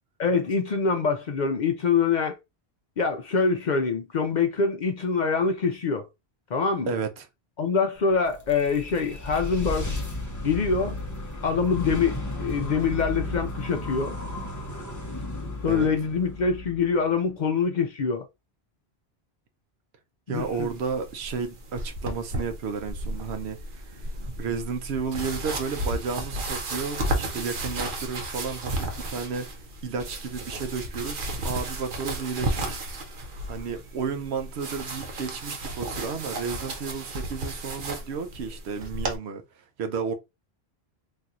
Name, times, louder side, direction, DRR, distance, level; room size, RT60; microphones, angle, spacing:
voice 1, 0.2-2.4 3.0-6.1 6.5-6.9 7.6-9.9 10.4-11.0 11.4-14.2 14.8-14.9 15.6-18.3 20.3-20.7, left 5 dB, 55° left, 0.6 m, -25 dB
voice 2, 6.9-7.3 15.7-15.9 20.3-24.1 24.4-29.5 29.8-32.8 33.5-39.4 39.8-40.1, right 5 dB, 85° right, 0.9 m, -32 dB
sound 1, 8.1-17.4, left 2 dB, 20° left, 0.7 m, -34 dB
sound 2, 20.3-39.2, right 1 dB, 55° right, 0.9 m, -33 dB
4.1 x 2.7 x 2.4 m
omnidirectional pair, 1.1 m